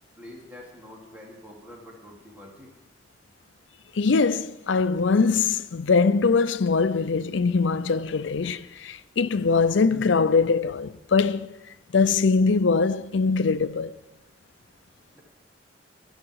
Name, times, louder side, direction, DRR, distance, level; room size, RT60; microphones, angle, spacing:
voice 1, 0.2-2.7 15.1-15.2, left 1 dB, 10° right, 3.3 m, -46 dB
voice 2, 4.0-11.6 11.9-13.9, left 4 dB, 90° left, 0.6 m, -22 dB
17.0 x 12.5 x 4.8 m
head